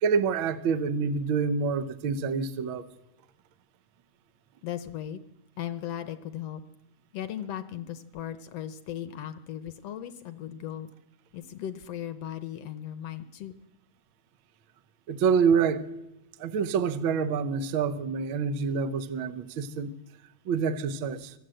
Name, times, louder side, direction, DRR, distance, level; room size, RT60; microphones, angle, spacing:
voice 1, 0.0-2.9 15.1-15.9 16.4-19.9 20.4-21.3, right 6 dB, 75° right, 1.1 m, -27 dB
voice 2, 4.6-5.2 5.6-6.6 7.1-10.9 11.3-13.5, left 11 dB, 70° left, 1.5 m, -37 dB
25.5 x 16.0 x 7.8 m
omnidirectional pair, 3.9 m